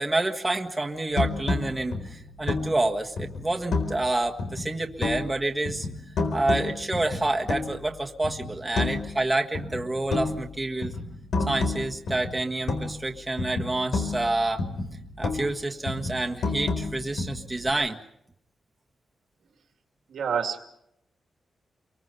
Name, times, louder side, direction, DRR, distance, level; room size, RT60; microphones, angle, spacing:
voice 1, 0.0-5.9 6.3-10.9 11.5-14.6 15.2-18.0, right 2 dB, 15° right, 1 dB, 1.6 m, -28 dB
sound 1, 1.1-4.1 4.4-5.4 5.6-7.9 8.2-9.2 9.5-13.1 13.4-15.6 15.9-17.7, left 3 dB, 85° left, 4.4 m, -30 dB
voice 2, 20.1-20.7, right 7 dB, 85° right, 4 dB, 2.6 m, -28 dB
30.0 x 23.5 x 5.6 m, 0.78 s
wide cardioid pair, 155°, 0 cm